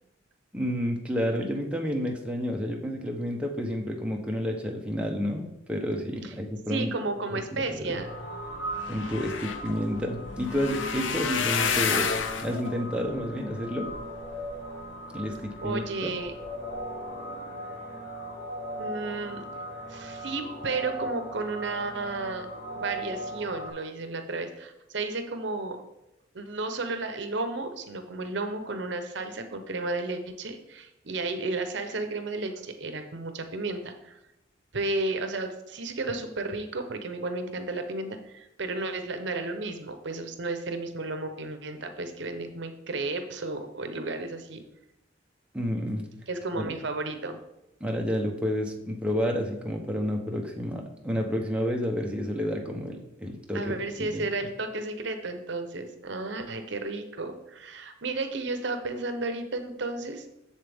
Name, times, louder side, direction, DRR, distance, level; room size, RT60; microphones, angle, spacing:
voice 1, 0.5-6.9 7.3-8.0 8.9-13.9 15.1-16.1 45.5-46.1 46.5-46.7 47.8-54.2, equal, 5° right, 0 dB, 0.8 m, -30 dB
voice 2, 6.7-8.1 15.6-16.3 18.8-19.4 19.9-22.5 22.8-25.8 26.3-34.2 34.7-44.6 46.3-47.4 53.5-60.3, right 3 dB, 65° right, 7 dB, 0.8 m, -33 dB
sound 1, 7.9-23.7, right 1 dB, 55° left, 1.3 m, -39 dB
sound 2, 8.2-8.3 8.5-14.8 15.4-15.8 16.3-16.5 16.7-16.8, left 6 dB, 85° left, 0.6 m, -31 dB
7.4 x 7.0 x 3.5 m, 0.89 s
head